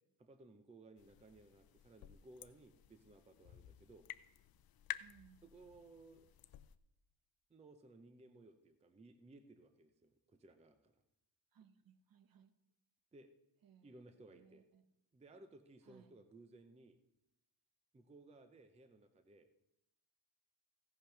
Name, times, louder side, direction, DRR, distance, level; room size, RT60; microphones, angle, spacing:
voice 1, 0.2-4.1 5.4-6.3 7.5-11.0 13.1-13.4 13.8-14.6 15.1-17.0 17.9-19.5, right 2 dB, 15° right, 0.5 m, -60 dB
sound 1, 1.0-6.8, left 12 dB, 50° left, 0.5 m, -52 dB
voice 2, 5.0-5.4 11.5-12.5 13.6-14.0 14.3-14.8 15.8-16.2, right 8 dB, 45° right, 0.8 m, -65 dB
16.0 x 5.7 x 5.8 m
wide cardioid pair, 165°, 48 cm